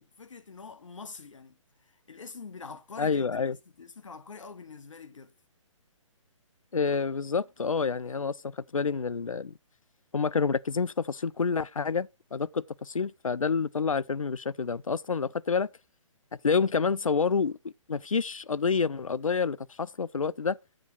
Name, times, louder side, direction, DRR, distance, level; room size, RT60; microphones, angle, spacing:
voice 1, 0.0-5.3, left 4 dB, 70° left, 0.9 m, -45 dB
voice 2, 3.0-3.5 6.7-9.5 10.1-15.7 16.4-20.6, left 5 dB, 85° left, 0.5 m, -28 dB
8.2 x 7.5 x 4.0 m
figure-of-eight pair, 140°, 17 cm